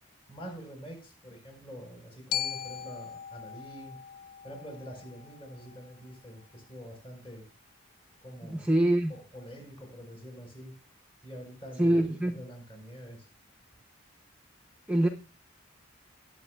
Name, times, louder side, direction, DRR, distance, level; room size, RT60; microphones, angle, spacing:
voice 1, 0.3-4.0 4.4-7.5 8.2-8.7 9.1-10.8 11.2-13.3, equal, 30° left, 2 dB, 4.3 m, -46 dB
Glockenspiel, 2.3-6.4, left 9 dB, 45° left, 0.4 m, -39 dB
voice 2, 8.4-9.1 11.8-12.4 14.9-15.1, right 1 dB, 5° right, 3 dB, 0.6 m, -24 dB
19.5 x 8.0 x 2.3 m, 0.33 s
head